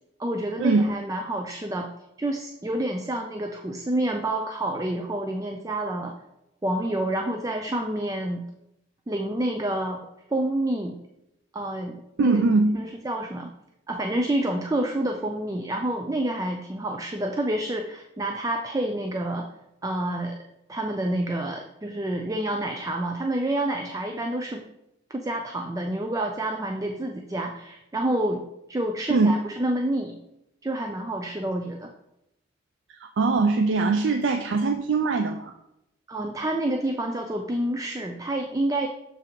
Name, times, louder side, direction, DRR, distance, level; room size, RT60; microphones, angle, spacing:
voice 1, 0.2-1.9 2.2-6.1 6.6-8.4 9.1-10.0 10.3-11.0 11.5-12.4 12.7-13.5 13.9-19.5 19.8-20.4 20.7-24.7 25.1-30.2 30.6-31.9 36.1-38.9, right 1 dB, 20° right, 4 dB, 0.4 m, -28 dB
voice 2, 12.2-12.8 29.1-29.3 33.0-35.5, right 3 dB, 80° right, 6 dB, 0.4 m, -21 dB
7.0 x 3.7 x 4.4 m, 0.86 s
head